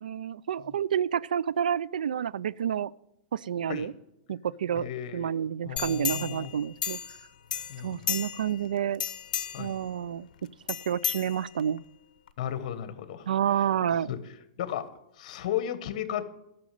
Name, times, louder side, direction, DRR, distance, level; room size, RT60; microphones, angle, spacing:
voice 1, 0.0-2.9 3.3-3.9 4.3-7.0 7.8-9.0 9.6-10.3 10.9-11.8 13.3-14.1, right 9 dB, 85° right, 21 dB, 0.4 m, -29 dB
voice 2, 4.7-5.3 5.6-6.5 7.7-8.0 9.5-9.7 12.4-13.3 13.6-13.7 14.1-14.2 14.6-14.9 15.2-16.3, left 10 dB, 55° left, 12 dB, 1.2 m, -34 dB
sound 1, 5.8-7.2 7.5-8.6 8.9-9.7 10.7-11.8 12.3-12.4, left 9 dB, 75° left, 0.7 m, -33 dB
12.5 x 6.2 x 7.5 m, 0.84 s
hypercardioid pair, 140°, 4 cm